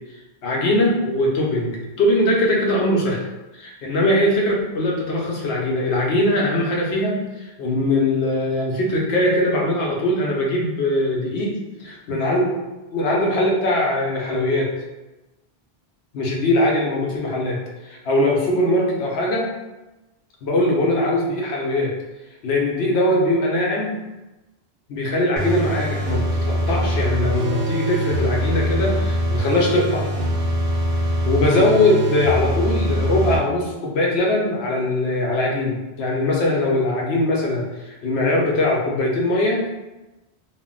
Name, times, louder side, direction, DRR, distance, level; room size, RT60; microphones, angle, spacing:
voice 1, 0.4-3.2 3.5-11.5 11.8-12.6 12.9-14.7 16.1-17.6 17.8-19.5 20.4-21.9 22.4-24.0 24.9-30.1 31.3-39.7, left 1 dB, 80° left, -2 dB, 0.9 m, -21 dB
sound 1, 25.4-33.4, equal, 55° right, 0.7 m, -23 dB
2.5 x 2.1 x 3.7 m, 1.1 s
omnidirectional pair, 1.1 m